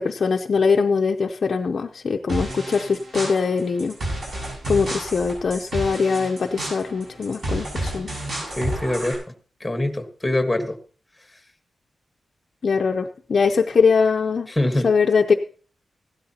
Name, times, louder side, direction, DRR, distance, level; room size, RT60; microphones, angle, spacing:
voice 1, 0.0-4.0 4.7-8.1 12.6-14.5 14.8-15.3, left 5 dB, 45° left, 3 dB, 0.6 m, -21 dB
sound 1, 2.3-9.1, right 1 dB, 45° right, 7.6 m, -31 dB
voice 2, 8.5-9.2 9.6-10.8 14.5-14.9, left 1 dB, 10° left, 6 dB, 1.4 m, -24 dB
16.5 x 12.5 x 2.9 m, 0.40 s
wide cardioid pair, 180°, 0 cm